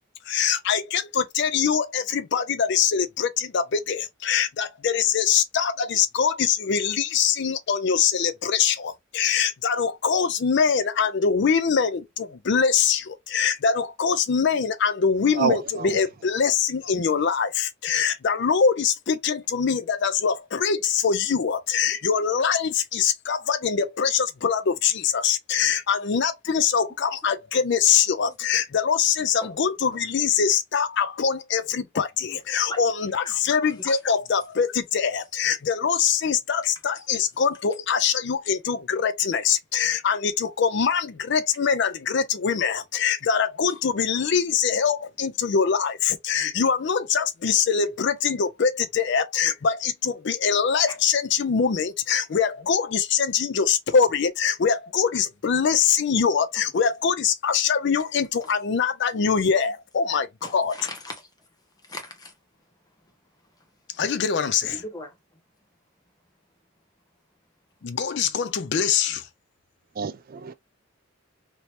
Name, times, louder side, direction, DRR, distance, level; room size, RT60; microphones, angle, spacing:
voice 1, 0.3-60.3 60.5-60.7 64.0-64.8 67.8-69.3, left 6 dB, 55° left, 0.4 m, -23 dB
voice 2, 15.3-16.0 69.9-70.5, right 6 dB, 45° right, 0.4 m, -28 dB
voice 3, 33.2-34.0 37.0-37.1 43.7-43.8 50.9-51.0 56.6-56.7 58.4-58.5 60.4-61.5 61.8-62.4 63.4-63.7 63.9-64.1 64.6-65.2, left 1 dB, 20° left, 0.8 m, -40 dB
3.2 x 2.8 x 2.7 m
head